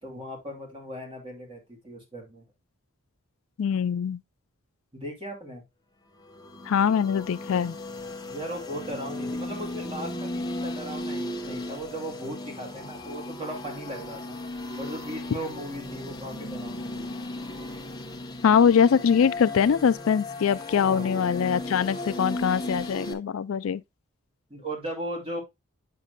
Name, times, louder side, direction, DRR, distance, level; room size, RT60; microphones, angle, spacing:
voice 1, 0.0-2.4 4.9-5.6 8.2-14.4 14.8-17.1 20.8-21.3 24.5-25.4, right 1 dB, 25° right, 2.7 m, -37 dB
voice 2, 3.6-4.2 6.7-7.8 18.4-23.8, left 7 dB, 70° left, 0.3 m, -23 dB
sound 1, 6.2-23.1, left 1 dB, 20° left, 1.0 m, -36 dB
8.3 x 6.6 x 2.2 m
head